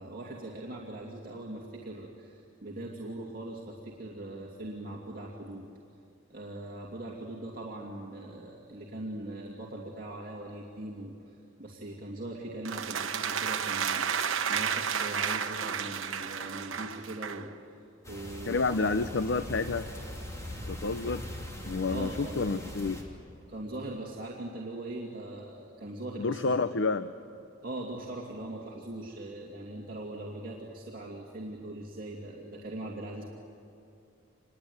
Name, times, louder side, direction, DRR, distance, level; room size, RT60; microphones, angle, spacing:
voice 1, 0.0-5.7 6.3-14.2 14.5-18.9 21.9-22.4 23.5-26.5 27.6-33.2, right 1 dB, 45° right, -3 dB, 2.6 m, -41 dB
sound 1, 12.6-17.5, right 7 dB, 80° right, 1.1 m, -32 dB
sound 2, 18.0-23.0, left 1 dB, 15° left, 3.3 m, -41 dB
voice 2, 18.5-19.9 20.6-21.3 21.6-23.0 26.2-27.1, left 3 dB, 60° left, 11 dB, 0.7 m, -29 dB
26.5 x 21.5 x 9.5 m, 2.6 s
head